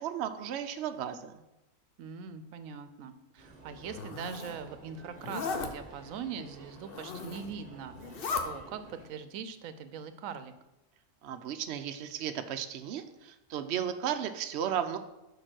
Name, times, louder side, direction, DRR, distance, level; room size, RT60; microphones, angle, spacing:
voice 1, 0.0-1.3 11.2-15.0, right 9 dB, 65° right, 8 dB, 0.8 m, -34 dB
voice 2, 2.0-8.2 8.4-10.5, right 7 dB, 80° right, 11 dB, 1.0 m, -42 dB
sound 1, 3.4-9.1, right 3 dB, 30° right, 1.2 m, -52 dB
Zipper (clothing), 3.8-4.6 5.2-5.7 6.8-7.5 7.9-8.4, left 4 dB, 50° left, 0.9 m, -36 dB
6.6 x 5.3 x 6.1 m, 0.95 s
omnidirectional pair, 1.4 m